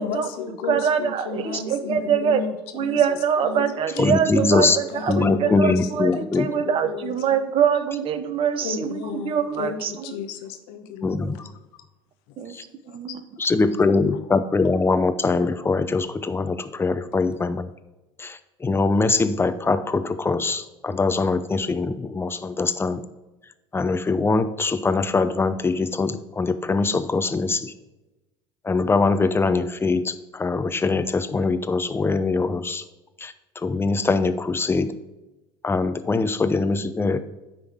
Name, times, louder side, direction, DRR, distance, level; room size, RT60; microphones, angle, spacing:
voice 1, 0.0-3.7 4.4-7.4 8.6-11.5 12.5-13.0, left 6 dB, 70° left, 8 dB, 1.0 m, -34 dB
voice 2, 0.7-2.4 2.7-9.9 12.4-12.5 12.9-13.2, right 7 dB, 45° right, 11 dB, 0.9 m, -24 dB
voice 3, 4.0-4.8 5.1-6.5 11.0-11.4 12.5-12.6 13.4-17.7 18.2-23.0 23.7-27.7 28.6-32.8 33.2-34.9 35.6-37.2, left 3 dB, 20° left, 11 dB, 0.7 m, -22 dB
9.6 x 3.8 x 6.2 m, 1.0 s
hypercardioid pair, 75°, 13 cm